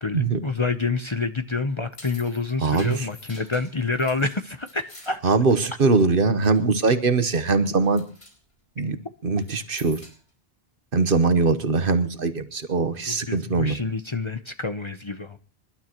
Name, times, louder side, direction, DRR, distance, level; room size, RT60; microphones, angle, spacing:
voice 1, 0.0-5.2 13.1-15.4, left 4 dB, 30° left, 0.8 m, -28 dB
sound 1, 1.7-6.2 6.4-6.9 7.3-7.5 7.8-8.3 9.3-10.3, left 1 dB, 85° left, 4.8 m, -48 dB
voice 2, 2.6-3.1 5.2-8.0 8.8-9.0 9.2-10.0 10.9-13.8, right 4 dB, 60° right, 1.2 m, -21 dB
27.0 x 12.0 x 3.0 m
omnidirectional pair, 1.0 m